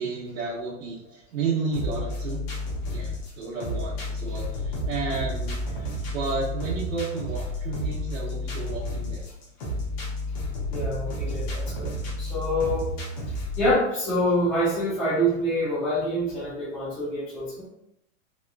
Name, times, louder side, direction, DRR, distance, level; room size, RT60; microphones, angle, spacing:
voice 1, 0.0-2.4 2.9-5.7 6.1-9.3, right 4 dB, 90° right, -6 dB, 0.8 m, -32 dB
sound 1, 1.7-13.7, left 1 dB, 35° left, 0.7 m, -31 dB
voice 2, 10.7-11.9 12.2-12.9 13.6-17.7, equal, 5° left, -12 dB, 0.4 m, -26 dB
2.9 x 2.2 x 2.2 m, 0.80 s
supercardioid pair, 160°, 38 cm